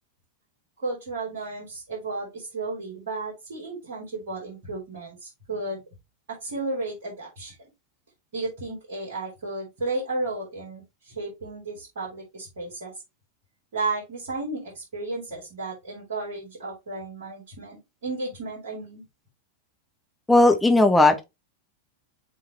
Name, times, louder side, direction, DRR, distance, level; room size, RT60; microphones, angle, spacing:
voice 1, 0.8-5.8 6.4-7.6 8.3-12.9 13.7-19.0, right 3 dB, 60° right, 3.5 m, -33 dB
voice 2, 20.3-21.2, left 2 dB, 5° left, 1.1 m, -17 dB
7.4 x 3.8 x 3.3 m
figure-of-eight pair, 90°, 0 cm